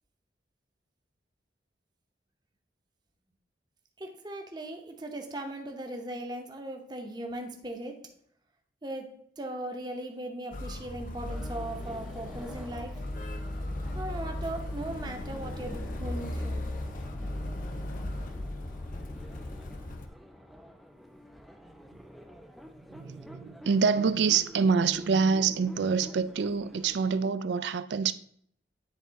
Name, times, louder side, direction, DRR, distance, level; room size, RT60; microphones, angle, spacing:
voice 1, 4.0-8.1 8.8-13.0 13.9-16.7, right 1 dB, 25° right, 0.8 m, -38 dB
Motor vehicle (road), 10.5-20.1, left 1 dB, 45° left, 0.6 m, -36 dB
sound 1, 11.3-27.2, equal, ahead, 0.4 m, -49 dB
voice 2, 22.9-28.1, right 5 dB, 75° right, 0.4 m, -26 dB
9.7 x 3.5 x 4.0 m
head